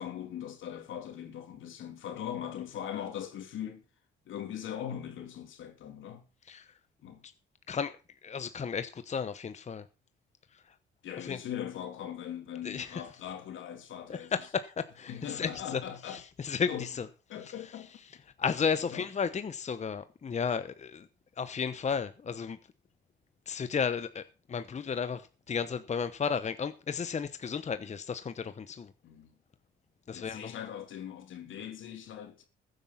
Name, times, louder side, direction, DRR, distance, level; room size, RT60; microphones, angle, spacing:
voice 1, 0.0-3.8 4.2-6.2 7.0-7.2 11.0-14.3 15.1-16.2 16.7-16.9 17.3-17.9 18.8-19.1 29.0-29.3 30.1-32.4, left 9 dB, 75° left, 3.2 m, -40 dB
voice 2, 7.7-9.9 10.5-10.7 11.2-11.4 12.6-13.0 14.1-17.1 17.4-17.7 18.4-21.1 21.4-22.6 23.5-28.9 30.1-30.6, left 6 dB, 35° left, 1.0 m, -34 dB
15.0 x 9.1 x 5.7 m
cardioid pair, 90°, 20 cm